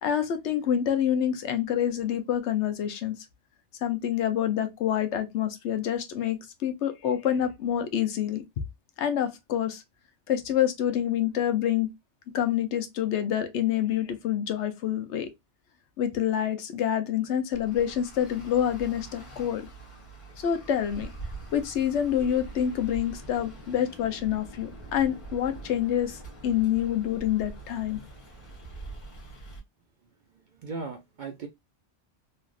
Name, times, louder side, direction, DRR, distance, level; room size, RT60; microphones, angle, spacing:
voice 1, 0.0-3.2 3.8-8.4 9.0-9.8 10.3-11.9 12.3-15.3 16.0-19.7 20.4-21.1 21.5-28.0, left 10 dB, 70° left, 0.9 m, -27 dB
Traffic noise roadway noise, 17.5-29.6, right 2 dB, 40° left, 1.2 m, -44 dB
voice 2, 30.3-31.5, right 4 dB, 60° right, 0.5 m, -38 dB
3.2 x 2.5 x 2.4 m
omnidirectional pair, 1.2 m